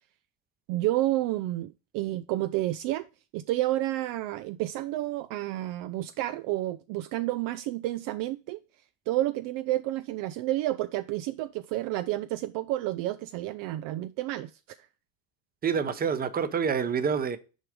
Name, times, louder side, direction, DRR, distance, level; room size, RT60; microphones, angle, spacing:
voice 1, 0.7-3.0 3.3-8.6 9.1-14.8, right 15 dB, 55° right, 0.5 m, -30 dB
voice 2, 15.6-17.4, right 6 dB, 20° right, 0.8 m, -27 dB
6.4 x 4.7 x 5.0 m
supercardioid pair, 120°, 41 cm